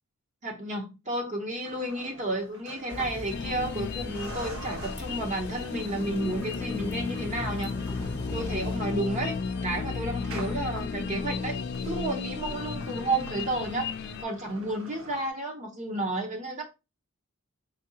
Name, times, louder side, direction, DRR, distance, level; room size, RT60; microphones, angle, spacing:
voice 1, 0.4-7.9 8.3-9.3 9.6-11.5 11.8-13.9 14.2-16.6, right 1 dB, 35° right, 1.0 m, -31 dB
sound 1, 1.6-3.8 4.2-15.3, right 1 dB, 75° right, 1.2 m, -46 dB
sound 2, 2.9-8.8, left 1 dB, 10° left, 0.8 m, -41 dB
sound 3, 3.3-14.2, left 5 dB, 55° left, 0.4 m, -34 dB
4.7 x 3.4 x 2.8 m
head